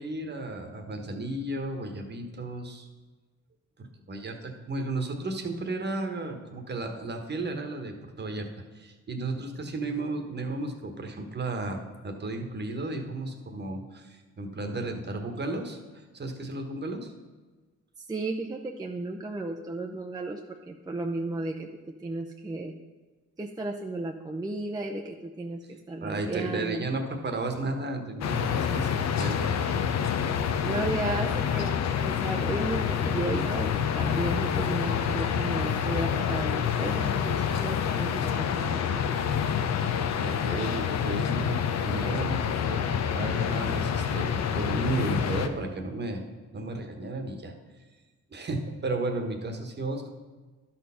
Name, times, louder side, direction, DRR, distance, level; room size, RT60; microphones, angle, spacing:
voice 1, 0.0-2.9 3.8-8.5 8.7-17.1 26.0-29.9 40.2-46.3 46.5-47.5 48.3-50.1, right 2 dB, 35° right, 4 dB, 1.3 m, -34 dB
voice 2, 18.0-21.7 22.0-22.7 23.4-26.8 30.6-39.4, right 2 dB, 15° right, 1 dB, 0.6 m, -34 dB
sound 1, 28.2-45.5, left 8 dB, 60° left, 0.7 m, -27 dB
11.5 x 4.4 x 5.7 m, 1.3 s
cardioid pair, 90°, 30 cm